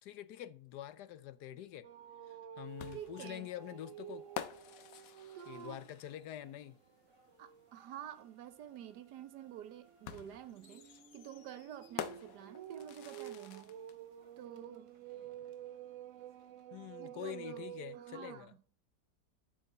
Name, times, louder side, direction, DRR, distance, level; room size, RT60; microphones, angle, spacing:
voice 1, 0.0-1.9 2.3-4.3 5.5-6.8 16.7-18.5, left 12 dB, 85° left, 1.3 m, -46 dB
sound 1, 1.2-16.6, right 2 dB, 20° right, 1.3 m, -70 dB
sound 2, 1.8-6.0 6.4-6.7 9.2-18.4, right 11 dB, 65° right, 0.8 m, -50 dB
sound 3, 2.8-6.4 7.9-8.0 10.1-14.0, left 9 dB, 65° left, 1.1 m, -48 dB
voice 2, 2.9-3.5 5.3-5.8 7.4-13.7 14.4-14.9 17.0-17.7 17.9-18.6, right 10 dB, 90° right, 1.4 m, -49 dB
11.0 x 4.9 x 6.7 m
omnidirectional pair, 1.7 m